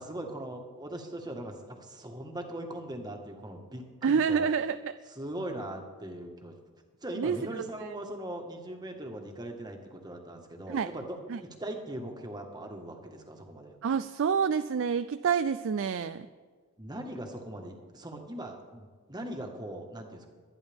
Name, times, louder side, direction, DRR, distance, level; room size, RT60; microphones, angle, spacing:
voice 1, 0.0-4.5 5.1-6.5 7.0-13.7 16.8-20.3, right 1 dB, 20° right, 3 dB, 1.5 m, -40 dB
voice 2, 4.0-4.9 7.2-7.4 10.7-10.9 11.3-11.4 13.8-16.3, right 6 dB, 60° right, 11 dB, 0.4 m, -27 dB
23.5 x 9.9 x 3.6 m, 1.5 s
head